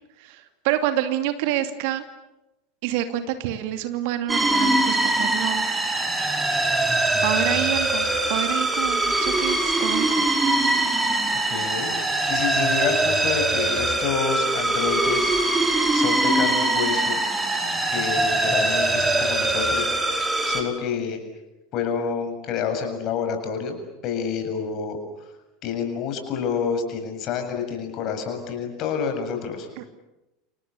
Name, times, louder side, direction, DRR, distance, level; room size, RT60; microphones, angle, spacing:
voice 1, 0.2-2.0 2.8-5.7 7.2-10.3 29.8-29.9, right 12 dB, 55° right, 8 dB, 2.6 m, -27 dB
sound 1, 4.3-20.6, right 2 dB, 10° right, 5.2 m, -22 dB
voice 2, 11.5-15.4 15.9-17.2 17.9-19.9 20.4-21.2 21.7-23.8 24.0-25.0 25.6-29.7, left 6 dB, 45° left, 6 dB, 7.4 m, -28 dB
30.0 x 27.5 x 7.1 m, 0.98 s
figure-of-eight pair, 75°, 0 cm